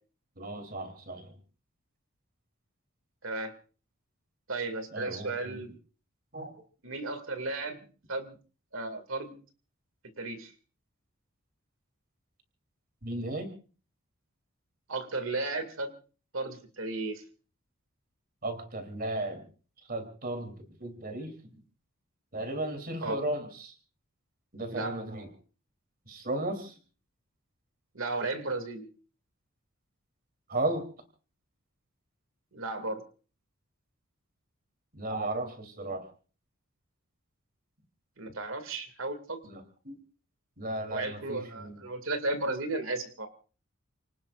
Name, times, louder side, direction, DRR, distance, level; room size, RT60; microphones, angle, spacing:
voice 1, 0.4-1.3 4.9-5.6 6.3-6.5 13.0-13.5 18.4-19.5 19.9-20.5 20.8-21.6 22.3-23.7 24.5-25.3 26.1-26.7 30.5-30.8 34.9-36.0 39.4-39.9 40.6-41.8, right 2 dB, 45° right, 6 dB, 3.3 m, -35 dB
voice 2, 3.2-3.5 4.5-5.7 6.8-8.4 8.7-9.3 10.2-10.5 14.9-15.9 16.3-17.2 23.0-23.2 24.7-25.0 27.9-28.9 32.5-33.0 38.2-39.4 40.9-43.3, right 2 dB, 65° right, 9 dB, 2.4 m, -34 dB
30.0 x 19.0 x 2.5 m, 0.38 s
head